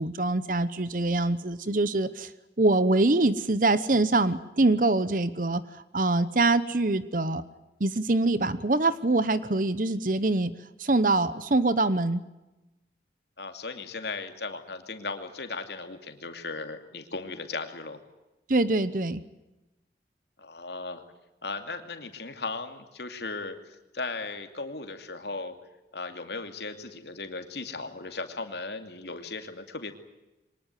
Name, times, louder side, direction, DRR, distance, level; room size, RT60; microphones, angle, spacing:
voice 1, 0.0-2.3 2.6-7.4 7.8-10.5 10.8-12.2 18.5-19.2, right 2 dB, 50° right, 15 dB, 1.0 m, -24 dB
voice 2, 13.4-18.0 20.4-21.0 21.4-25.5 25.9-29.9, left 3 dB, 75° left, 7 dB, 2.6 m, -37 dB
23.5 x 20.0 x 9.2 m, 1.0 s
head